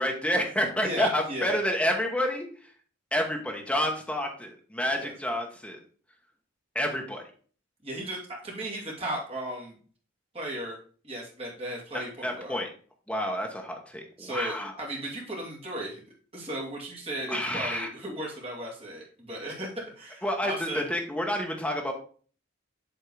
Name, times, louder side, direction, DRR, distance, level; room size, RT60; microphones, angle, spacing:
voice 1, 0.0-2.7 3.1-5.8 6.7-7.2 11.9-12.7 13.1-14.7 17.3-17.9 20.2-21.9, equal, 5° left, 2 dB, 1.1 m, -29 dB
voice 2, 0.8-1.6 5.0-5.1 7.8-9.8 10.3-10.8 11.0-12.6 14.2-16.0 16.3-19.7 20.0-20.8, right 1 dB, 30° right, -3 dB, 2.3 m, -36 dB
8.0 x 3.7 x 4.8 m, 0.42 s
head